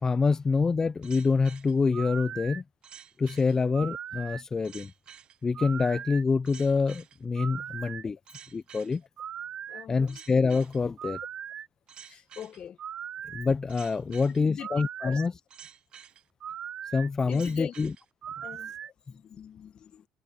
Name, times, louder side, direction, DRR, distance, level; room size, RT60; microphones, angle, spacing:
voice 1, 0.0-2.6 3.2-4.9 5.4-8.2 8.5-9.0 9.9-11.2 13.3-15.3 16.9-17.9, left 4 dB, 25° left, 0.6 m, -26 dB
sound 1, 1.0-18.9, right 9 dB, 50° right, 1.3 m, -41 dB
voice 2, 9.7-10.1 12.1-12.8 14.4-14.7 15.0-15.2 17.3-17.7 18.4-20.1, left 9 dB, 50° left, 1.5 m, -42 dB
supercardioid pair, 75°, 2 cm